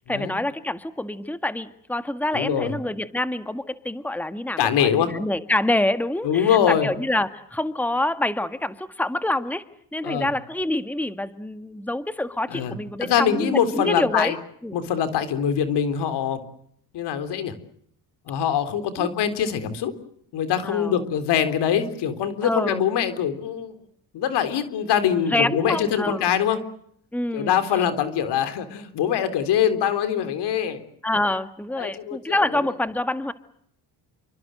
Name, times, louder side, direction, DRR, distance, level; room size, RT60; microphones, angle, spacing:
voice 1, 0.1-9.6 9.9-14.4 14.6-14.8 19.0-19.1 20.6-21.0 22.4-22.8 25.2-26.3 27.1-27.8 31.0-33.3, left 1 dB, 5° left, 11 dB, 1.7 m, -26 dB
voice 2, 2.3-2.7 4.6-5.1 6.2-6.9 10.0-10.3 12.5-12.7 13.0-14.4 14.7-16.4 16.9-17.5 18.3-19.9 20.3-23.7 24.1-26.6 27.3-30.8 31.8-32.4, left 8 dB, 80° left, 11 dB, 3.7 m, -23 dB
28.5 x 25.0 x 7.8 m, 0.68 s
cardioid pair, 95°, 40 cm